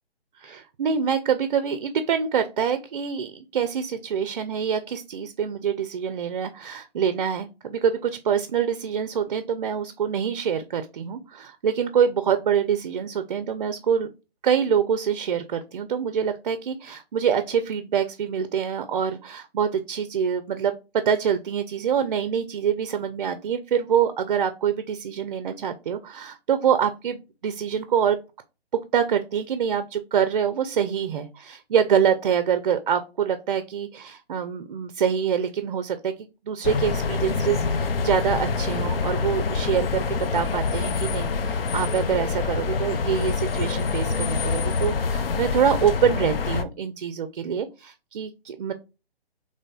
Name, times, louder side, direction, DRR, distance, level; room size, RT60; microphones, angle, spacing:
voice 1, 0.4-14.1 14.4-28.2 28.9-36.1 36.5-48.7, right 8 dB, 45° right, 10 dB, 0.5 m, -25 dB
sound 1, 36.6-46.6, left 4 dB, 65° left, 0.6 m, -26 dB
4.0 x 3.1 x 2.2 m, 0.28 s
figure-of-eight pair, 140°, 31 cm